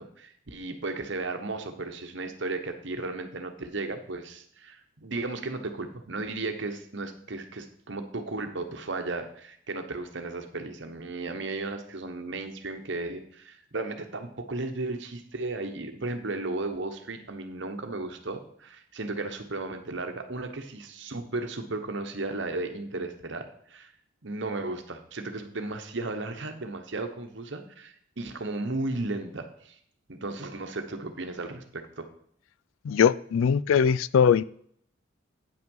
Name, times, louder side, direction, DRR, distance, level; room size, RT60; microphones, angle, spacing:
voice 1, 0.0-23.9 24.2-29.8 30.1-32.1, right 2 dB, 65° right, 1.1 m, -35 dB
voice 2, 32.8-34.4, left 7 dB, 90° left, 0.3 m, -21 dB
9.0 x 5.9 x 5.4 m
head